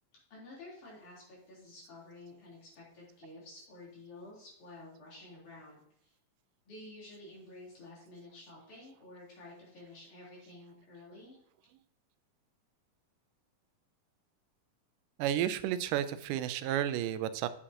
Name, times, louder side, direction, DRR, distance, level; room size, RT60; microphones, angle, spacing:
voice 1, 0.3-6.1 6.6-11.4, left 2 dB, 65° left, -6 dB, 5.0 m, -51 dB
voice 2, 15.2-17.5, right 11 dB, 85° right, 12 dB, 2.2 m, -32 dB
9.7 x 7.0 x 2.9 m, 0.75 s
omnidirectional pair, 3.7 m